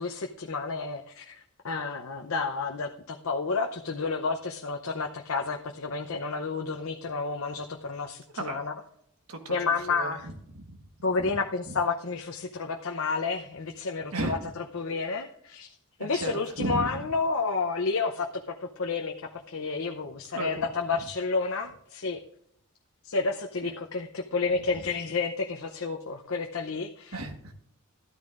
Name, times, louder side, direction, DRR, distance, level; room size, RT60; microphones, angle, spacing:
voice 1, 0.0-1.4 1.6-8.7 9.5-10.3 11.0-15.7 16.0-22.2 23.0-27.2, left 4 dB, 65° left, 0.7 m, -30 dB
voice 2, 9.3-10.6 11.2-11.3 11.6-11.7 14.1-14.4 16.0-16.3 16.6-16.9 20.3-20.5 27.1-27.5, right 2 dB, 80° right, 1.5 m, -34 dB
13.5 x 13.0 x 2.5 m
head